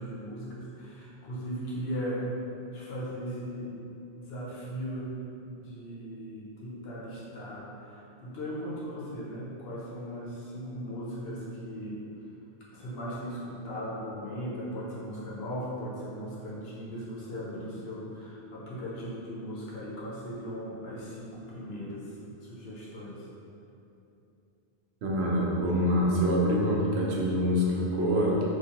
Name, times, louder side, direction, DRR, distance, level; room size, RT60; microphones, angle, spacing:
voice 1, 0.0-2.3 2.7-3.8 4.2-5.1 5.4-12.0 12.7-23.3, equal, 70° left, -7 dB, 0.9 m, -38 dB
voice 2, 25.0-28.4, equal, 80° right, -4 dB, 0.8 m, -25 dB
3.1 x 2.3 x 2.8 m, 2.8 s
omnidirectional pair, 1.1 m